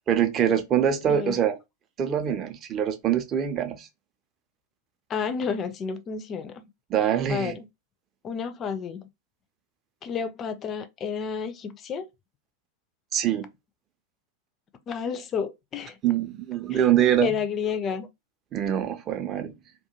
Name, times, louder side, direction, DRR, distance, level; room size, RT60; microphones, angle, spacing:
voice 1, 0.1-1.6 2.0-3.9 6.9-7.5 13.1-13.5 16.0-17.4 18.5-19.5, right 9 dB, 30° right, 0.5 m, -24 dB
voice 2, 5.1-6.7 7.3-7.6 8.2-9.1 10.0-12.1 14.9-16.0 16.7-16.8 17.2-18.1, left 6 dB, 25° left, 0.4 m, -30 dB
2.3 x 2.2 x 2.8 m
figure-of-eight pair, 90°, 0 cm